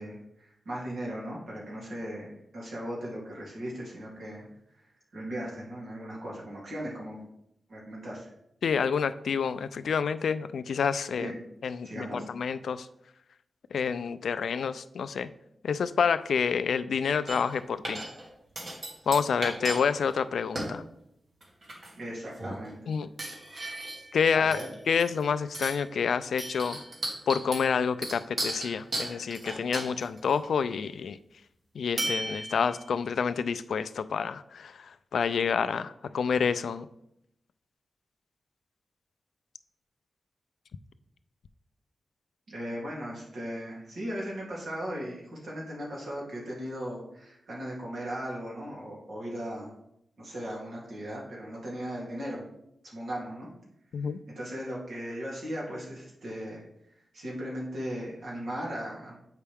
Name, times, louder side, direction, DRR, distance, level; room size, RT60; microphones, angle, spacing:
voice 1, 0.0-4.5 4.7-4.8 5.1-7.2 7.7-8.3 11.1-11.4 11.8-12.3 22.0-22.9 24.3-24.7 42.5-49.7 50.2-52.4 52.8-53.5 54.0-59.2, equal, 85° right, -5 dB, 2.7 m, -37 dB
voice 2, 8.6-11.3 11.6-12.9 13.7-15.3 15.6-18.0 19.1-20.8 22.9-23.1 24.1-24.6 24.9-26.8 27.3-31.2 31.7-36.9 53.9-54.2, left 6 dB, 90° left, 13 dB, 0.3 m, -28 dB
sound 1, 17.3-17.6 17.8-18.3 18.5-19.8 20.1-20.2 20.5-20.7 21.4-22.0 22.4-22.7 23.2-24.1 24.5-25.2 25.5-25.9 26.4-30.4 32.0-32.8, right 1 dB, 60° right, 2.2 m, -35 dB
8.2 x 5.6 x 3.5 m, 0.79 s
cardioid pair, 75°, 0 cm